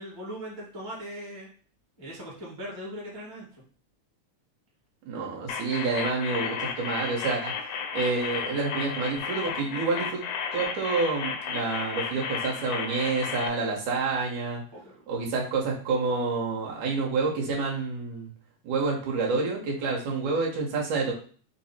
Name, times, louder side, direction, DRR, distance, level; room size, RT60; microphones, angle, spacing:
voice 1, 0.0-1.5 2.0-3.4 14.7-15.1, equal, 25° right, -5 dB, 0.4 m, -39 dB
voice 2, 5.1-7.5 7.9-10.2 10.5-14.6 15.1-18.3 18.6-21.1, right 4 dB, 75° right, -2 dB, 2.4 m, -28 dB
sound 1, 5.5-13.5, left 6 dB, 80° left, 1.7 m, -33 dB
5.5 x 2.0 x 4.1 m, 0.43 s
omnidirectional pair, 3.7 m